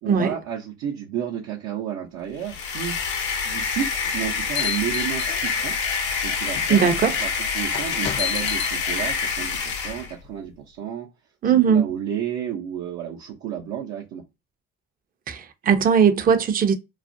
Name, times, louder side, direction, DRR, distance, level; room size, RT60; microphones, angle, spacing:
voice 1, 0.0-3.1 3.4-5.7 6.2-7.3 7.5-11.1 11.4-14.2, right 9 dB, 70° right, 0.7 m, -32 dB
sound 1, 2.4-10.1, left 5 dB, 75° left, 0.8 m, -26 dB
sound 2, 4.0-5.8 6.5-6.7 7.7-8.7, left 10 dB, 40° left, 0.4 m, -31 dB
voice 2, 6.7-7.2 11.4-11.9 15.3-16.7, right 7 dB, 30° right, 0.5 m, -19 dB
2.4 x 2.1 x 2.5 m
supercardioid pair, 65°, 29 cm